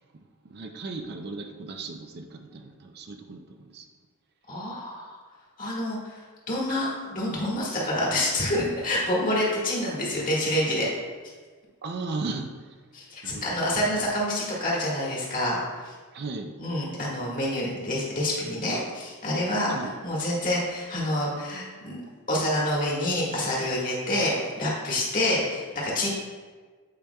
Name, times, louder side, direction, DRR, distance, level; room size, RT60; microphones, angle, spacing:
voice 1, 0.4-3.9 11.8-12.7 13.2-13.6 13.8-14.1 16.1-16.5 19.7-19.9, right 3 dB, 45° right, 5 dB, 0.5 m, -36 dB
voice 2, 4.5-5.2 5.6-10.9 12.9-15.9 16.6-19.7 20.0-22.0 22.3-26.1, left 1 dB, 40° left, -5 dB, 1.7 m, -27 dB
8.8 x 5.0 x 2.3 m, 1.5 s
head